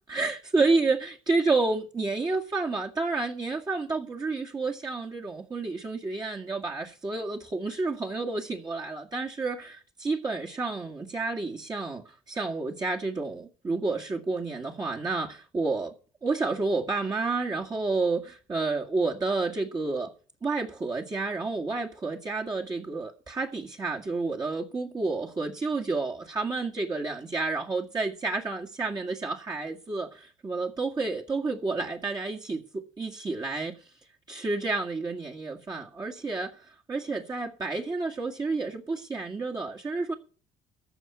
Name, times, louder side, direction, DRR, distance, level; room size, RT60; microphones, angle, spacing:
voice 1, 0.1-15.9 16.2-20.1 20.4-33.8 34.3-36.6 36.9-40.1, right 3 dB, 30° right, 1.9 m, -30 dB
14.0 x 5.7 x 8.8 m
supercardioid pair, 70°, 13 cm